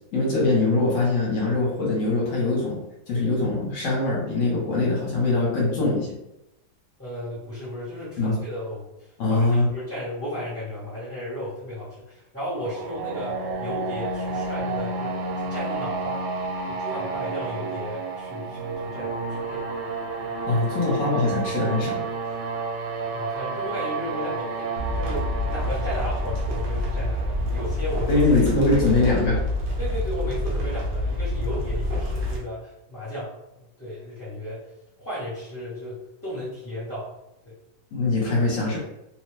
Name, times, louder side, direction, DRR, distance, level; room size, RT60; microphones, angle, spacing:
voice 1, 0.1-2.8 3.1-6.1 8.2-8.4 9.2-9.7 20.4-22.0 28.1-29.4 37.9-38.8, left 2 dB, 60° left, -3 dB, 1.1 m, -22 dB
voice 2, 7.0-16.2 16.7-19.6 20.2-20.4 23.1-28.2 28.7-28.8 29.8-34.7 35.0-36.0 36.2-37.1 37.4-37.5, equal, 15° left, -12 dB, 0.5 m, -34 dB
sound 1, 12.5-28.4, right 3 dB, 85° right, 1.2 m, -31 dB
sound 2, 24.8-32.4, left 1 dB, 60° right, 0.7 m, -27 dB
2.7 x 2.2 x 3.2 m, 0.89 s
omnidirectional pair, 1.8 m